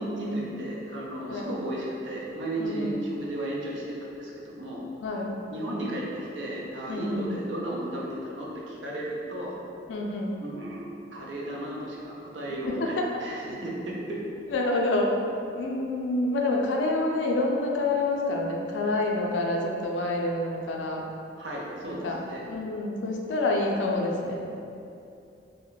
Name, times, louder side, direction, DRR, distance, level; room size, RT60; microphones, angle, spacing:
voice 1, 0.0-4.8 5.5-9.6 10.4-14.3 21.4-22.4, right 1 dB, 90° right, -4 dB, 0.6 m, -34 dB
voice 2, 2.6-3.0 5.0-5.4 6.9-7.3 9.9-10.4 12.6-13.1 14.5-15.2 15.5-21.0 21.8-22.2 22.5-24.5, left 2 dB, 90° left, 0 dB, 0.4 m, -27 dB
2.2 x 2.1 x 3.8 m, 2.6 s
head